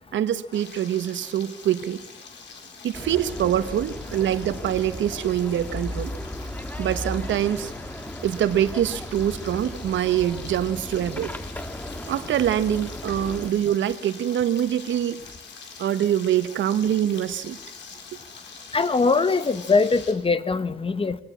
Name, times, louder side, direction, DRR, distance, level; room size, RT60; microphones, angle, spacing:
voice 1, 0.1-2.0 2.8-6.1 6.8-7.7 8.2-11.3 12.1-15.2 15.8-17.6, right 10 dB, 70° right, 12 dB, 1.4 m, -24 dB
Frying (food), 0.5-20.1, left 5 dB, 65° left, 4.4 m, -45 dB
sound 1, 2.9-13.5, left 1 dB, 10° left, 1.8 m, -36 dB
voice 2, 18.7-21.2, left 4 dB, 25° left, 14 dB, 1.3 m, -22 dB
24.0 x 18.0 x 7.5 m, 0.76 s
cardioid pair, 90°, 20 cm